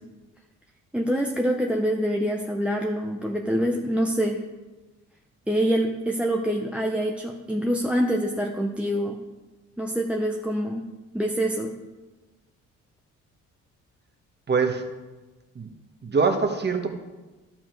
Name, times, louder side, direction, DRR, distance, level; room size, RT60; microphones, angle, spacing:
voice 1, 0.9-4.4 5.5-9.2 9.8-10.9 11.1-11.7, equal, 5° right, 2 dB, 0.8 m, -25 dB
voice 2, 14.5-14.9 15.5-15.7 16.0-17.0, right 4 dB, 35° right, 5 dB, 1.4 m, -24 dB
11.0 x 7.5 x 4.6 m, 1.2 s
cardioid pair, 90°, 30 cm